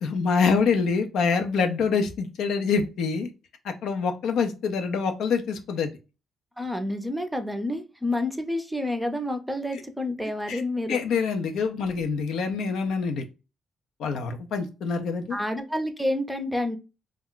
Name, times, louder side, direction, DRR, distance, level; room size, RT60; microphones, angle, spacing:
voice 1, 0.0-3.3 3.6-5.9 10.5-10.6 10.9-13.2 14.0-15.4, left 5 dB, 75° left, 5 dB, 0.5 m, -25 dB
voice 2, 6.6-11.0 15.3-16.8, left 1 dB, 5° right, 6 dB, 0.5 m, -29 dB
2.3 x 2.2 x 3.7 m, 0.29 s
cardioid pair, 90°, 0 cm